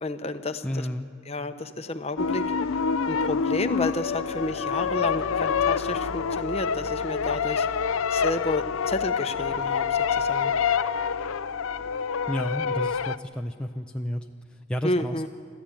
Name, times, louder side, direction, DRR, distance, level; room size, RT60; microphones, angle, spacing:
voice 1, 0.0-0.9 1.3-7.7 8.1-10.5 14.8-15.3, left 2 dB, 30° left, 9 dB, 0.9 m, -31 dB
voice 2, 0.6-1.1 12.3-15.3, equal, 5° left, 2 dB, 0.5 m, -31 dB
sound 1, 2.2-13.2, left 6 dB, 90° left, 0.5 m, -27 dB
sound 2, 2.9-12.6, equal, 35° right, 3.4 m, -51 dB
sound 3, 4.7-11.6, left 2 dB, 75° right, 5.9 m, -46 dB
26.0 x 14.0 x 8.9 m, 2.2 s
head